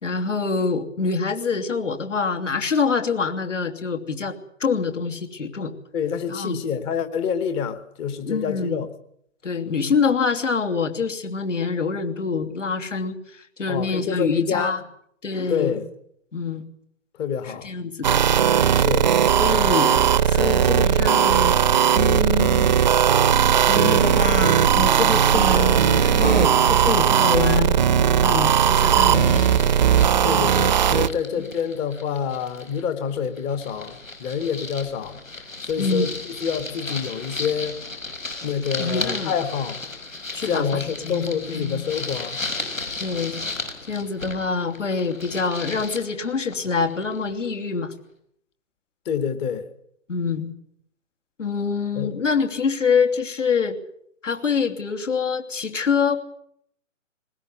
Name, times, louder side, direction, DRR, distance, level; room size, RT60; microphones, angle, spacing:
voice 1, 0.0-4.3 4.6-5.7 6.3-6.6 8.2-8.8 9.4-14.8 15.2-15.8 16.3-16.6 17.4-18.2 19.3-21.6 21.9-22.8 23.7-27.7 28.2-29.6 31.3-31.5 35.8-36.1 38.8-39.3 40.3-41.8 43.0-43.4 43.9-47.9 50.1-50.5 51.4-53.8 54.2-56.2, left 5 dB, 70° left, 5 dB, 3.1 m, -25 dB
voice 2, 5.9-8.9 13.7-14.7 15.5-15.9 17.2-17.7 18.7-19.1 30.2-35.2 35.6-36.1 36.4-37.8 38.4-39.8 40.5-42.4 49.1-49.7 52.0-52.1, left 7 dB, 15° left, 12 dB, 1.0 m, -27 dB
sound 1, 18.0-31.1, right 8 dB, 35° right, 0.8 m, -18 dB
sound 2, 28.9-32.8 33.1-47.5, left 3 dB, 85° left, 6.1 m, -35 dB
20.5 x 19.0 x 9.7 m, 0.70 s
figure-of-eight pair, 135°, 39 cm